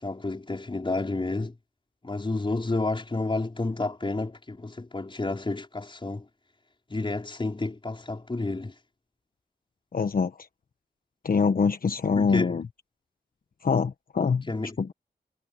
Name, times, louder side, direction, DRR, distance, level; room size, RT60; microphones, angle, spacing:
voice 1, 0.0-1.5 2.0-6.3 6.9-8.7 12.2-12.5 14.5-14.7, left 2 dB, 30° left, 5.5 m, -30 dB
voice 2, 9.9-10.5 11.2-12.7 13.6-14.5 14.8-14.9, left 5 dB, 55° left, 1.2 m, -24 dB
cardioid pair, 75°, 17 cm